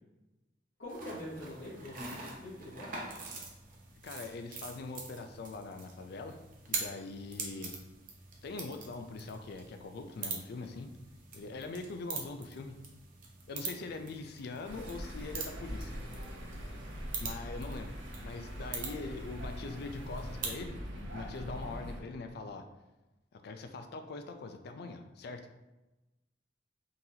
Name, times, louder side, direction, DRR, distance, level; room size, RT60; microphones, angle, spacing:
voice 1, 0.8-2.9, left 1 dB, 75° left, -8 dB, 0.9 m, -44 dB
sound 1, 0.9-20.6, right 4 dB, 50° right, 0.6 m, -44 dB
voice 2, 4.0-6.4 6.7-7.7 8.4-10.9 11.3-12.8 13.5-16.0 17.2-18.0 18.2-20.8 21.1-22.6 23.3-25.5, left 3 dB, 60° left, 7 dB, 0.4 m, -42 dB
sound 2, 14.6-22.0, equal, 80° right, 0.8 m, -42 dB
3.8 x 2.9 x 2.7 m, 1.0 s
head